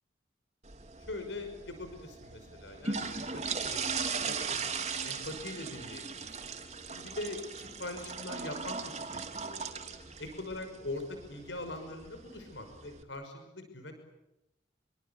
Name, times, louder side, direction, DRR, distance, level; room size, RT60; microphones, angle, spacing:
sound 1, 0.6-13.0, right 5 dB, 35° right, 3.4 m, -39 dB
voice 1, 1.1-6.6 6.9-9.8 10.2-13.9, left 2 dB, 75° left, 7 dB, 5.9 m, -42 dB
28.0 x 24.5 x 8.4 m, 0.90 s
head